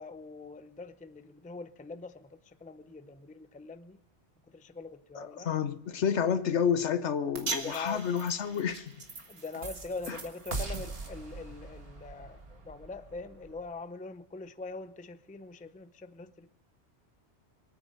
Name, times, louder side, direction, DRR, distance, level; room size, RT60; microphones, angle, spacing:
voice 1, 0.0-4.0 4.5-5.5 7.6-8.0 9.3-16.5, left 3 dB, 10° left, 0.4 m, -43 dB
voice 2, 5.1-8.9, left 7 dB, 75° left, 1.2 m, -29 dB
sound 1, 7.3-13.7, right 3 dB, 55° right, 2.0 m, -40 dB
23.5 x 9.2 x 6.6 m
omnidirectional pair, 1.2 m